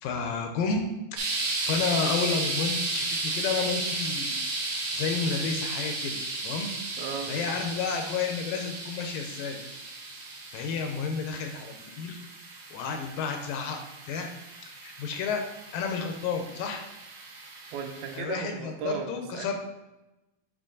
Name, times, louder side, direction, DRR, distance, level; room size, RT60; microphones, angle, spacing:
voice 1, 0.0-0.8 1.1-1.4 1.6-4.3 4.8-6.2 6.4-6.7 7.3-9.6 10.5-12.2 12.7-13.8 14.1-14.3 14.8-15.4 15.7-16.8 18.1-19.5, left 5 dB, 80° left, 4 dB, 2.2 m, -31 dB
sound 1, 1.2-18.2, right 2 dB, 60° right, 2.2 m, -34 dB
voice 2, 7.0-7.3 17.7-19.6, right 6 dB, 85° right, 4 dB, 2.7 m, -36 dB
7.5 x 4.2 x 3.8 m, 0.99 s
omnidirectional pair, 4.3 m